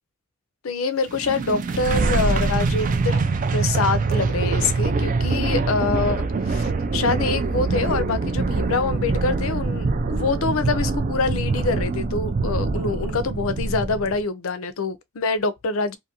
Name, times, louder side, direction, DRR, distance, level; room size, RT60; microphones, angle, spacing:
voice 1, 0.6-3.2 3.5-16.0, left 4 dB, 75° left, 0.5 m, -25 dB
sound 1, 1.1-14.2, right 3 dB, 40° right, 0.4 m, -24 dB
2.6 x 2.5 x 2.8 m
head